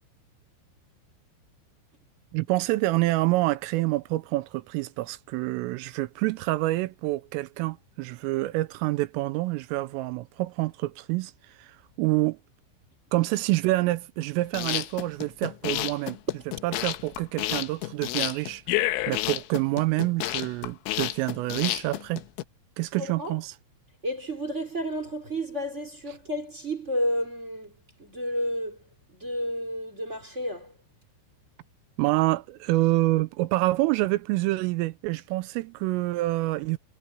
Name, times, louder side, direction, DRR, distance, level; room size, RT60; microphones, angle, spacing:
voice 1, 2.3-12.4 13.1-16.2 16.6-22.2 22.8-23.5 32.0-36.8, right 19 dB, 85° right, 3.3 m, -27 dB
sound 1, 14.4-22.4, left 16 dB, 75° left, 3.3 m, -30 dB
voice 2, 23.0-23.4 24.0-28.8 29.1-30.8, equal, 15° right, 3.3 m, -31 dB
omnidirectional pair, 5.9 m